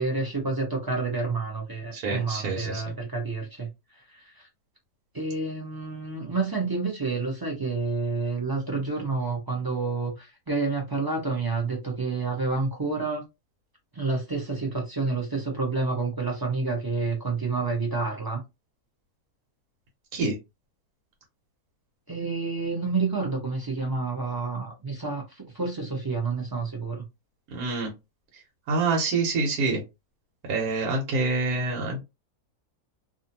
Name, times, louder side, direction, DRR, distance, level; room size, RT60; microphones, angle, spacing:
voice 1, 0.0-3.7 4.0-4.5 5.1-13.2 13.9-18.4 22.1-27.1, right 3 dB, 25° right, 0.5 m, -29 dB
voice 2, 1.9-2.8 20.1-20.4 27.5-27.9 28.3-28.4 28.7-29.8 30.5-32.0, right 3 dB, 75° right, 1.3 m, -26 dB
2.6 x 2.5 x 2.7 m
omnidirectional pair, 1.6 m